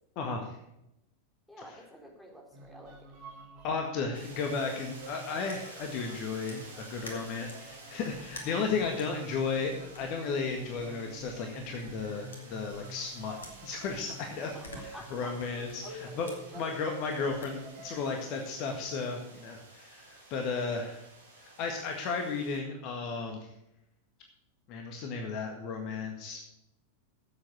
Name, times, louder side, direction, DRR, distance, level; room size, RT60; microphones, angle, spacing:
voice 1, 0.1-0.5 3.6-13.4 13.6-14.5 15.1-16.3 16.5-21.0 21.4-23.4 24.7-26.4, left 4 dB, 40° left, 3 dB, 1.7 m, -34 dB
voice 2, 1.5-3.1 14.4-15.4 15.8-16.6 20.6-20.9, equal, 5° left, -1 dB, 3.8 m, -50 dB
sound 1, 2.5-18.6, right 1 dB, 45° right, 2.5 m, -49 dB
sound 2, 4.1-22.6, right 2 dB, 70° right, 2.8 m, -52 dB
sound 3, 5.5-7.7 8.2-12.0 12.3-14.2 14.4-17.5, left 2 dB, 70° left, 2.4 m, -52 dB
11.5 x 8.0 x 6.3 m, 0.83 s
figure-of-eight pair, 90°, 0 cm